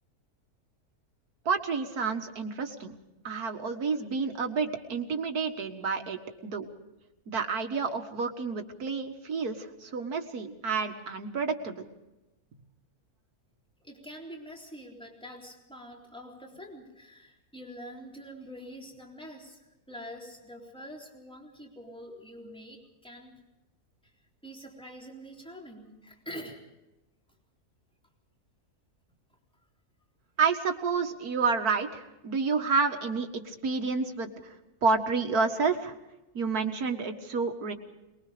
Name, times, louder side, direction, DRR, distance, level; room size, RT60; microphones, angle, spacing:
voice 1, 1.5-3.0 3.2-6.7 7.3-11.8 30.4-34.6 34.8-35.9 36.3-37.7, right 4 dB, 80° right, 5 dB, 2.2 m, -29 dB
voice 2, 13.8-19.6 19.9-23.3 24.0-24.1 24.4-26.6, equal, 5° left, -1 dB, 3.7 m, -45 dB
23.5 x 21.5 x 5.1 m, 0.99 s
omnidirectional pair, 1.6 m